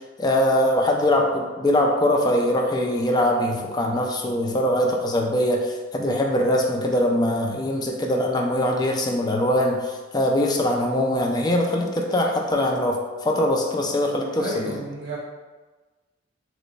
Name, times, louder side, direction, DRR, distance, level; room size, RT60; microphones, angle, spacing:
voice 1, 0.2-14.8, left 1 dB, 20° left, 1 dB, 0.4 m, -22 dB
voice 2, 14.4-15.2, right 1 dB, 55° right, -5 dB, 0.7 m, -31 dB
3.1 x 2.2 x 3.9 m, 1.3 s
head